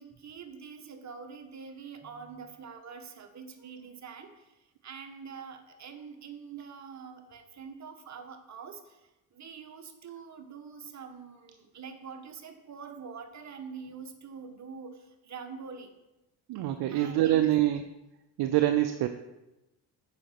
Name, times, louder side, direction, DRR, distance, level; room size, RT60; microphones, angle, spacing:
voice 1, 0.0-15.9 16.9-17.5, right 6 dB, 40° right, 5 dB, 1.3 m, -45 dB
voice 2, 16.5-17.9 18.4-19.1, right 13 dB, 65° right, 8 dB, 0.6 m, -25 dB
7.8 x 5.0 x 5.9 m, 0.97 s
supercardioid pair, 75°, 42 cm